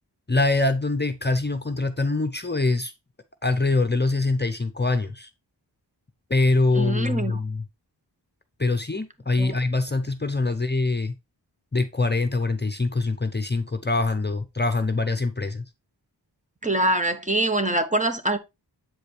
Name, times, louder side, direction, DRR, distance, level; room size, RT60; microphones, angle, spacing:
voice 1, 0.3-2.9 3.4-5.3 6.3-7.6 8.6-11.1 11.7-15.6, left 3 dB, 25° left, 0.7 m, -24 dB
voice 2, 6.7-7.4 9.4-9.6 16.6-18.4, right 2 dB, 15° right, 0.9 m, -24 dB
7.8 x 5.0 x 3.2 m
wide cardioid pair, 65°, 42 cm